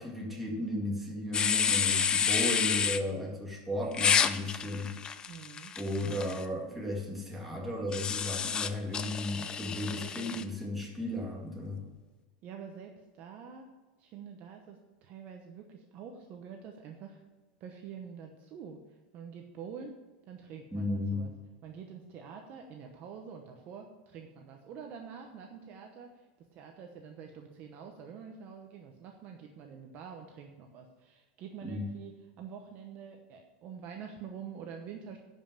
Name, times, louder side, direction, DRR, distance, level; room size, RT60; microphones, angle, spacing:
voice 1, 0.0-4.9 5.8-11.9 20.7-21.2 31.6-31.9, left 1 dB, ahead, -3 dB, 2.1 m, -35 dB
sound 1, 1.3-3.0 3.9-6.4 7.9-10.4, left 7 dB, 20° left, 0.4 m, -29 dB
voice 2, 5.3-5.7 9.9-10.3 12.4-13.7 14.0-17.2 17.6-20.0 20.3-21.3 21.6-35.2, right 7 dB, 35° right, 3 dB, 1.0 m, -46 dB
11.0 x 5.5 x 7.4 m, 1.3 s
supercardioid pair, 165°, 5 cm